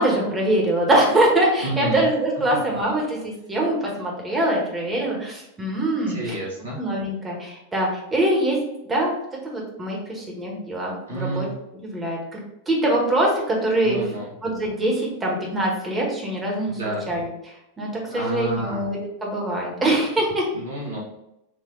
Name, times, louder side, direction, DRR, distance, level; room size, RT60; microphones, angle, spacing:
voice 1, 0.0-6.4 6.8-8.6 8.9-9.1 9.4-11.5 11.8-12.4 12.7-14.0 14.4-17.3 17.8-20.4, right 1 dB, 15° right, -2 dB, 1.5 m, -23 dB
voice 2, 1.6-2.0 6.1-6.8 11.1-11.5 13.8-14.3 16.6-17.1 18.1-18.9 20.5-21.0, right 1 dB, 70° right, -3 dB, 1.6 m, -29 dB
4.8 x 2.8 x 3.9 m, 0.84 s
figure-of-eight pair, 90°, 0 cm